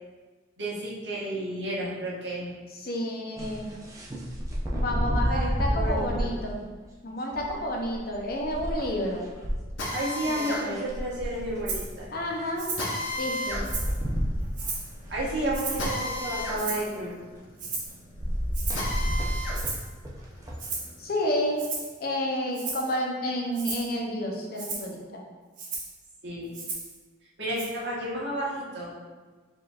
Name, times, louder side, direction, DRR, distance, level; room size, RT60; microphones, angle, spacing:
voice 1, 0.6-2.5 5.2-6.3 9.9-12.1 15.1-17.1 26.2-26.5 27.4-28.9, right 1 dB, 65° right, -7 dB, 1.3 m, -32 dB
voice 2, 2.7-3.7 4.7-6.6 7.0-9.3 10.4-10.8 12.1-12.7 13.2-13.6 21.0-21.6 22.0-25.2, left 1 dB, 50° left, 0 dB, 0.7 m, -30 dB
sound 1, 3.4-6.3 7.3-9.5 10.2-10.3 10.5-12.0 13.1-13.2 13.4-16.7 18.1-20.6, equal, 15° right, 0.5 m, -30 dB
Drill, 9.8-19.6 20.1-21.7, left 1 dB, 80° left, 0.9 m, -35 dB
Rattle (instrument), 11.7-11.9 12.6-12.9 13.3-14.0 14.5-14.9 15.5-15.9 16.6-17.0 17.6-18.0 18.5-18.9 19.5-19.9 20.6-20.9 21.6-22.0 22.5-22.9 23.5-23.9 24.6-24.9 25.6-25.9 26.5-27.0 27.6-27.7, right 4 dB, 45° right, 0.9 m, -35 dB
4.8 x 3.8 x 2.4 m, 1.3 s
head